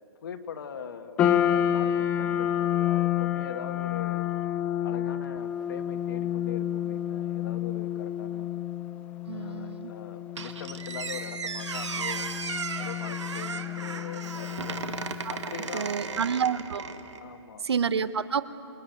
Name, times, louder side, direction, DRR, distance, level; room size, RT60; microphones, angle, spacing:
voice 1, 0.2-4.3 4.8-8.5 9.3-12.2 12.7-14.8 15.3-16.3 17.2-17.7, left 7 dB, 50° left, 8 dB, 1.6 m, -42 dB
sound 1, 1.2-15.6, left 10 dB, 10° left, 0.5 m, -30 dB
voice 2, 9.3-9.9 15.2-15.3 15.7-16.9 17.6-18.4, right 7 dB, 65° right, 13 dB, 1.1 m, -29 dB
Squeak, 10.4-17.2, right 5 dB, 90° right, 2.1 m, -36 dB
28.5 x 22.0 x 9.3 m, 2.6 s
hypercardioid pair, 170°, 15 cm